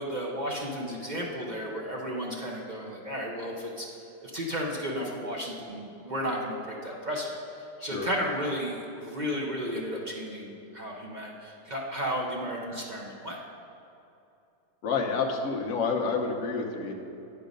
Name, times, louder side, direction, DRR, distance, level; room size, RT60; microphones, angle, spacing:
voice 1, 0.0-3.9 4.2-13.4, equal, 45° right, -2 dB, 0.5 m, -33 dB
voice 2, 14.8-16.9, left 4 dB, 55° left, 1 dB, 1.1 m, -29 dB
9.4 x 5.6 x 5.2 m, 2.8 s
omnidirectional pair, 1.8 m